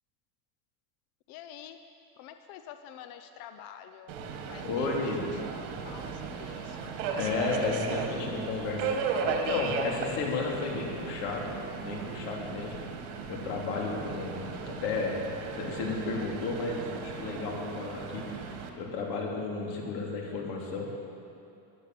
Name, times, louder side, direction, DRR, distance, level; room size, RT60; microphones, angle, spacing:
voice 1, 1.3-1.8 2.2-4.1 4.5-5.1 5.5-6.9, left 10 dB, 50° left, 8 dB, 0.7 m, -48 dB
Subway metro underground, 4.1-18.7, right 6 dB, 65° right, 2.0 m, -36 dB
voice 2, 4.6-5.2 7.2-8.9 9.2-12.8 13.3-15.2 15.5-20.9, left 3 dB, 85° left, -1 dB, 3.3 m, -33 dB
14.0 x 10.5 x 7.6 m, 2.7 s
supercardioid pair, 150°, 47 cm